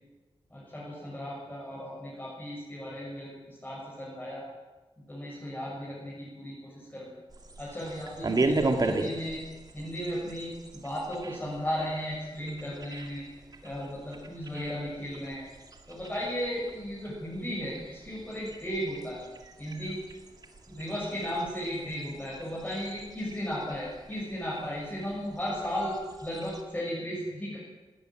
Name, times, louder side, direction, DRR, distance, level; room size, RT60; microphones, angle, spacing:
voice 1, 0.5-4.4 5.1-7.1 7.6-9.4 9.7-10.5 10.8-13.2 13.6-15.5 15.9-19.2 19.6-20.0 20.7-27.6, equal, 15° left, -7 dB, 7.5 m, -35 dB
sound 1, 7.3-26.6, right 2 dB, 40° right, 2.3 m, -37 dB
19.5 x 18.5 x 9.4 m, 1.2 s
wide cardioid pair, 155°, 10 cm